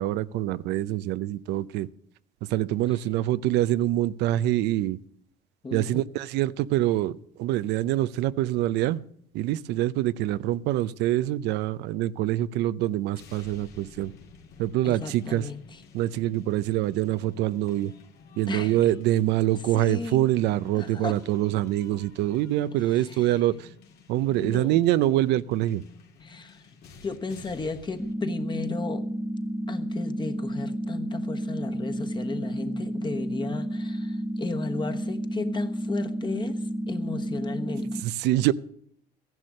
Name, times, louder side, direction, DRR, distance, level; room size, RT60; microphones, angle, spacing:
voice 1, 0.0-1.9 2.5-5.0 5.7-9.0 9.3-14.1 14.6-15.5 15.9-17.9 18.4-23.7 24.1-25.8 38.0-38.5, right 14 dB, 85° right, 0.5 m, -25 dB
voice 2, 5.6-6.0 14.8-15.8 18.5-18.8 19.7-20.2 20.7-21.2 23.0-23.3 24.3-24.8 26.2-26.6 27.0-29.0 29.7-38.0, left 4 dB, 25° left, 1.3 m, -35 dB
sound 1, 13.2-28.1, left 5 dB, 70° left, 2.3 m, -51 dB
sound 2, 28.0-38.0, right 1 dB, ahead, 0.7 m, -31 dB
14.5 x 11.0 x 6.4 m
cardioid pair, 110°, 17 cm